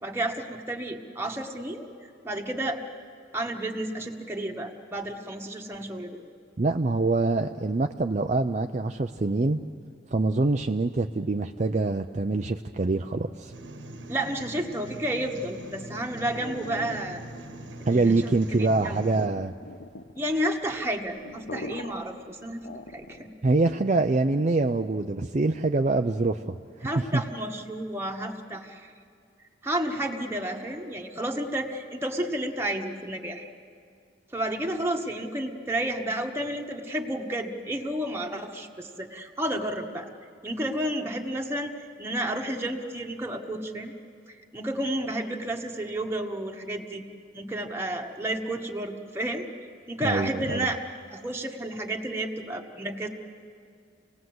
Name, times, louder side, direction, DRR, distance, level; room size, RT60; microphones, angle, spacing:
voice 1, 0.0-1.9 2.2-2.8 3.3-6.2 14.1-17.2 17.9-18.3 18.6-19.0 20.1-22.6 22.9-23.3 26.8-28.9 29.6-33.5 34.3-40.1 40.4-43.9 44.3-47.0 47.3-49.5 49.9-50.8 51.1-53.1, right 1 dB, 15° right, 1 dB, 1.5 m, -31 dB
voice 2, 6.6-9.6 10.1-13.5 17.9-19.5 23.4-26.6 27.0-27.2 50.0-50.7, right 3 dB, 40° right, 5 dB, 0.5 m, -25 dB
sound 1, 13.5-19.3, right 1 dB, 80° right, 1.3 m, -42 dB
sound 2, 15.6-23.4, left 2 dB, 65° left, 0.9 m, -43 dB
28.0 x 19.0 x 7.9 m, 2.4 s
head